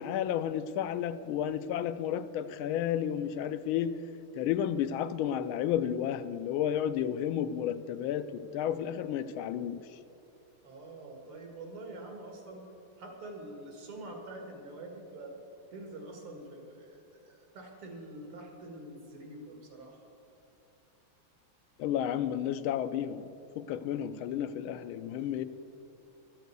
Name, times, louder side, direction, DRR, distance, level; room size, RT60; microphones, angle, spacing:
voice 1, 0.0-4.0 4.3-10.0 21.8-25.4, left 10 dB, 80° left, 12 dB, 1.4 m, -32 dB
voice 2, 10.6-12.6 13.0-15.3 15.7-20.0, right 2 dB, 85° right, 2 dB, 2.8 m, -45 dB
12.0 x 8.0 x 8.1 m, 2.9 s
omnidirectional pair, 2.3 m